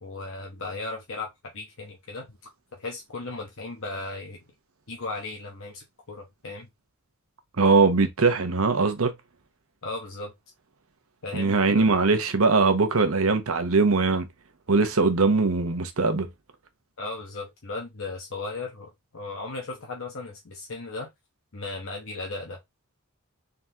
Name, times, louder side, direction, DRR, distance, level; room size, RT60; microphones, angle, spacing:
voice 1, 0.0-1.3 1.5-2.4 2.7-4.4 4.9-6.7 9.8-10.3 11.2-11.8 17.0-21.1 21.5-22.6, left 3 dB, 65° left, 1.0 m, -36 dB
voice 2, 7.6-9.1 11.3-14.3 14.7-16.3, right 4 dB, 75° right, 0.9 m, -21 dB
3.9 x 3.6 x 2.8 m
head